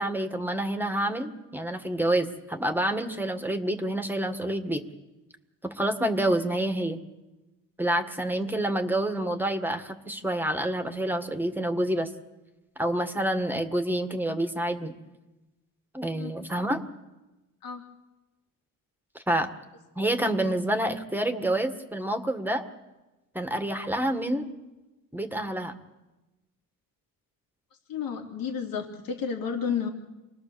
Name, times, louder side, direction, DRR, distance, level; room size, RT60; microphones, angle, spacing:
voice 1, 0.0-4.8 5.6-7.0 7.8-12.1 12.8-14.9 15.9-16.9 19.2-19.5 20.0-22.6 23.3-24.5 25.1-25.8, right 1 dB, 5° right, 6 dB, 1.8 m, -28 dB
voice 2, 27.9-29.9, left 7 dB, 80° left, 1 dB, 3.1 m, -31 dB
27.0 x 20.0 x 7.0 m, 1.1 s
cardioid pair, 110°, 34 cm